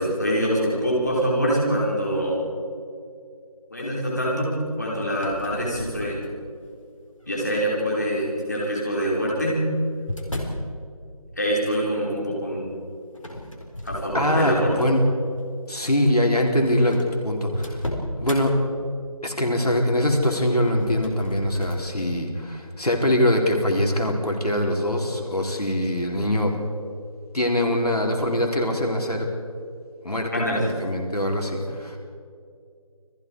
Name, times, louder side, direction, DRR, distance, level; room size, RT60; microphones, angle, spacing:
voice 1, 0.0-2.4 3.7-4.5 4.8-6.2 7.3-9.6 11.3-12.6 13.8-14.7 30.3-30.6, equal, 30° left, -5 dB, 5.3 m, -24 dB
sound 1, 5.1-6.6 7.2-7.7 8.8-10.7 13.1-14.7 15.2-15.4 16.2-16.3 16.5-16.6 16.9-18.4 20.5-21.8, left 1 dB, 60° left, 4.5 m, -35 dB
voice 2, 14.1-15.0 15.7-17.9 18.2-18.5 19.2-26.6 27.3-29.3 30.0-32.0, left 1 dB, 85° left, 1 dB, 4.5 m, -23 dB
29.5 x 20.0 x 5.0 m, 2.4 s
figure-of-eight pair, 180°, 19 cm